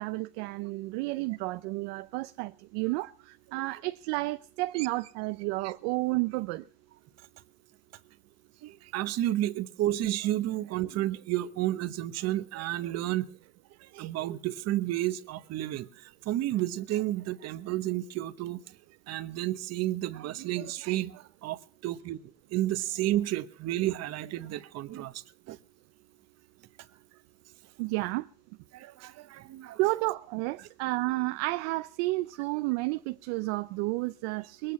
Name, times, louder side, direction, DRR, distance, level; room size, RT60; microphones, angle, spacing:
voice 1, 0.0-6.6 27.8-28.3 29.8-34.7, right 22 dB, 85° right, 0.7 m, -31 dB
voice 2, 8.6-13.3 13.9-18.6 19.1-22.2 22.5-25.6 28.7-29.8, right 14 dB, 50° right, 1.1 m, -31 dB
21.5 x 8.8 x 7.1 m
cardioid pair, 140°, 34 cm